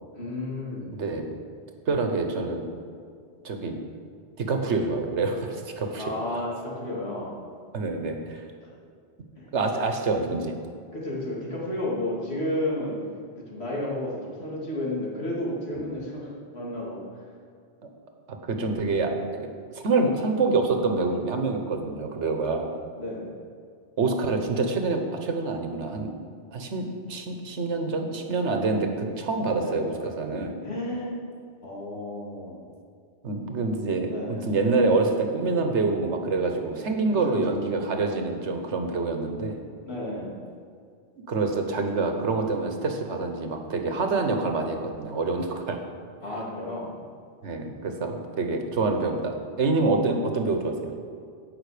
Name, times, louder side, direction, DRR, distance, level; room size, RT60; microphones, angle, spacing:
voice 1, 0.2-0.9 6.0-7.4 8.6-8.7 9.4-9.5 10.9-13.0 13.3-17.0 23.0-23.3 29.6-29.8 30.6-31.2 31.6-32.6 34.0-34.5 37.1-37.9 39.8-40.4 46.2-47.0, left 1 dB, 65° left, -5 dB, 2.7 m, -32 dB
voice 2, 0.9-1.3 1.9-2.7 3.4-3.8 4.4-6.0 7.7-8.4 9.5-10.6 15.8-15.9 17.8-17.9 18.5-22.7 24.0-26.1 26.5-30.5 33.2-34.1 34.4-39.6 41.3-45.8 47.4-50.9, right 3 dB, 90° right, 4 dB, 1.4 m, -26 dB
16.0 x 5.9 x 5.0 m, 2.2 s
omnidirectional pair, 1.2 m